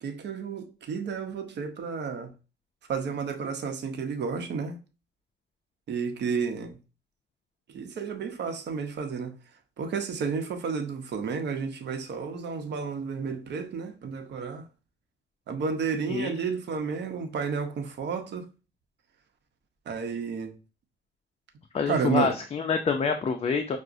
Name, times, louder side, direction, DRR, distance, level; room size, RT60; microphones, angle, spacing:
voice 1, 0.0-2.3 2.9-4.8 5.9-6.8 7.7-9.3 9.8-14.6 15.5-18.5 19.9-20.6 21.9-22.3, right 5 dB, 60° right, 0.8 m, -31 dB
voice 2, 21.7-23.8, left 5 dB, 30° left, 0.4 m, -27 dB
5.8 x 2.1 x 2.6 m
cardioid pair, 90°, 20 cm